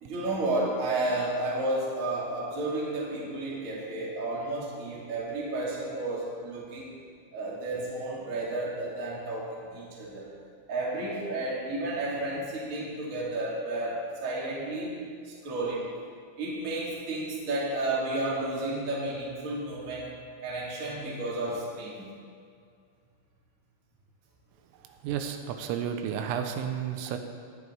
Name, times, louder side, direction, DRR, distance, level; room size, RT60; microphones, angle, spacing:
voice 1, 0.0-6.9 7.3-10.2 10.7-15.0 15.2-15.9 16.4-20.1 20.4-22.1, right 2 dB, 35° right, -5 dB, 1.4 m, -32 dB
voice 2, 25.0-27.2, right 8 dB, 85° right, 6 dB, 3.3 m, -32 dB
17.0 x 11.0 x 3.3 m, 2.2 s
omnidirectional pair, 6.0 m